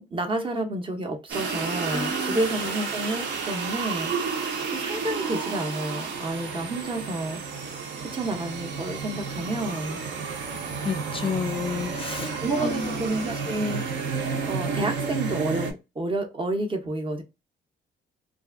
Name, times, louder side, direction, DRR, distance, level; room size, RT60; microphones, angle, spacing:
voice 1, 0.0-4.1 4.7-7.4 8.0-10.0 12.4-13.8 14.5-17.2, right 2 dB, 25° right, 0.6 m, -30 dB
sound 1, 1.3-15.7, right 5 dB, 65° right, 0.7 m, -31 dB
voice 2, 1.9-2.4 10.8-13.4, left 5 dB, 25° left, 0.4 m, -31 dB
2.6 x 2.4 x 2.4 m
cardioid pair, 120°, 19 cm